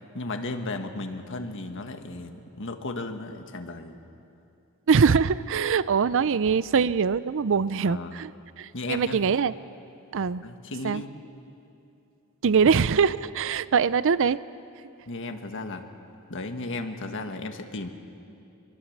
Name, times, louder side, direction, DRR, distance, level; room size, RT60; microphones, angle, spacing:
voice 1, 0.1-4.0 6.2-6.4 7.8-8.2 8.7-9.2 10.4-11.1 15.1-15.8 16.3-17.9, left 2 dB, 60° left, 6 dB, 1.6 m, -35 dB
voice 2, 4.9-8.3 8.6-9.5 10.1-10.4 10.8-11.0 12.4-14.4, right 6 dB, 60° right, 17 dB, 0.5 m, -23 dB
25.0 x 22.5 x 7.3 m, 2.7 s
head